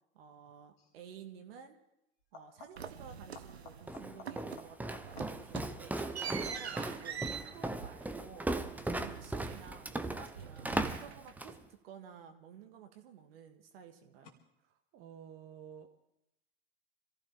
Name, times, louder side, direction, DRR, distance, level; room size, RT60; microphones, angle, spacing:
voice 1, 0.1-1.8 2.3-6.0 6.4-8.5 8.9-14.3, right 7 dB, 65° right, 5 dB, 1.9 m, -53 dB
sound 1, 0.8-1.0 2.2-3.0 3.3-6.7 12.1-12.7 14.2-14.3, left 5 dB, 70° left, 2.6 m, -56 dB
sound 2, 2.8-4.0 4.3-4.7 5.0-10.0 10.3-11.6, right 7 dB, 85° right, 0.8 m, -45 dB
Walk footsteps, 3.9-11.6, right 2 dB, 5° right, 0.8 m, -38 dB
voice 2, 14.6-16.0, right 8 dB, 45° right, 5 dB, 1.5 m, -52 dB
26.0 x 14.5 x 3.5 m, 0.82 s
figure-of-eight pair, 85°, 31 cm